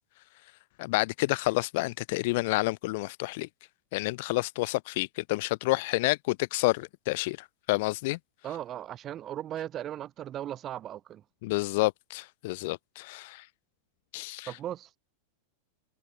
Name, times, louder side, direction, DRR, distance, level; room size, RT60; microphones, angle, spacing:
voice 1, 0.8-3.5 3.9-8.2 11.4-13.5 14.1-14.5, left 22 dB, 50° left, 2.2 m, -29 dB
voice 2, 8.4-11.2 14.5-14.9, right 11 dB, 30° right, 5.1 m, -37 dB
figure-of-eight pair, 90°, 0 cm